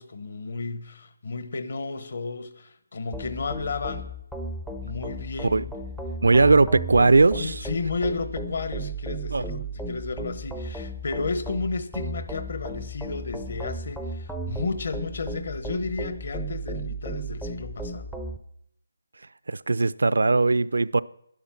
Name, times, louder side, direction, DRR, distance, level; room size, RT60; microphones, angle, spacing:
voice 1, 0.0-4.1 4.8-5.7 6.4-6.5 7.3-18.1, left 3 dB, 50° left, 1.2 m, -33 dB
sound 1, 3.1-18.4, right 1 dB, ahead, 0.4 m, -35 dB
voice 2, 6.2-7.5 9.3-9.4 19.5-21.0, right 3 dB, 80° right, 0.4 m, -19 dB
11.0 x 11.0 x 5.9 m
hypercardioid pair, 175°, 0 cm